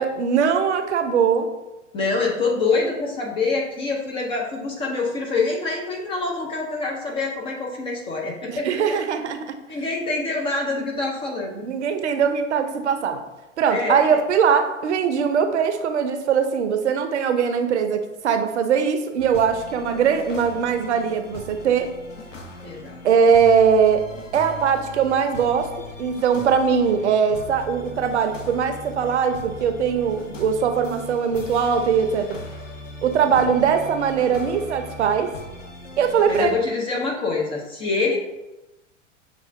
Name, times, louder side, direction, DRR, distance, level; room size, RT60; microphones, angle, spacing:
voice 1, 0.0-1.5 8.5-9.5 11.6-13.2 13.6-21.9 23.0-24.0 24.3-25.7 26.0-32.4 33.0-35.3 36.0-36.6, right 6 dB, 65° right, 7 dB, 0.6 m, -21 dB
voice 2, 1.9-9.0 9.7-11.7 13.7-14.2 22.6-23.0 33.2-33.3 36.3-38.2, left 3 dB, 15° left, -1 dB, 0.4 m, -25 dB
sound 1, 19.2-36.5, equal, 85° left, 0.7 m, -39 dB
6.5 x 2.4 x 2.4 m, 1.0 s
figure-of-eight pair, 95°, 37 cm